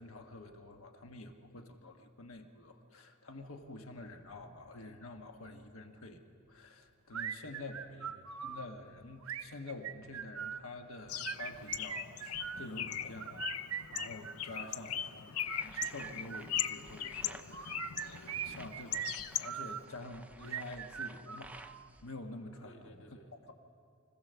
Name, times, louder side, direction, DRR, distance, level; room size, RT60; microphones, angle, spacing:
voice 1, 0.0-6.2 6.5-8.1 8.4-15.3 15.6-21.6 22.0-23.0, left 2 dB, 70° left, 5 dB, 1.4 m, -48 dB
sound 1, 7.1-8.6 9.2-10.7 11.1-12.7 13.2-14.8 15.4-16.8 17.5-19.8 20.4-21.9, right 8 dB, 75° right, 0.7 m, -41 dB
voice 2, 7.5-8.3 14.6-15.2 22.6-23.5, right 2 dB, 55° left, 3 dB, 1.8 m, -61 dB
Bird, 11.1-19.8, left 10 dB, 90° left, 0.6 m, -40 dB
sound 2, 15.4-22.1, right 2 dB, 5° right, 0.4 m, -55 dB
25.5 x 15.5 x 6.8 m, 2.4 s
head